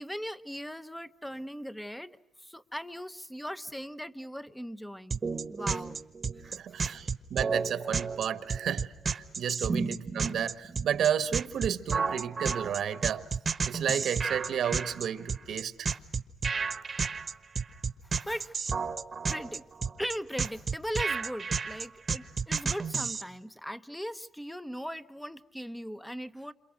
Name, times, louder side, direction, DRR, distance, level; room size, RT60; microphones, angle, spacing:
voice 1, 0.0-2.1 2.4-5.2 5.5-6.0 6.4-7.0 17.1-17.2 18.0-18.6 19.3-19.7 20.0-26.5, equal, 5° left, 0.9 m, -39 dB
sound 1, 5.1-23.2, right 5 dB, 30° right, 1.2 m, -31 dB
voice 2, 6.4-13.2 13.7-15.9, right 9 dB, 60° right, 1.4 m, -32 dB
28.5 x 27.5 x 6.4 m
cardioid pair, 145°, 0 cm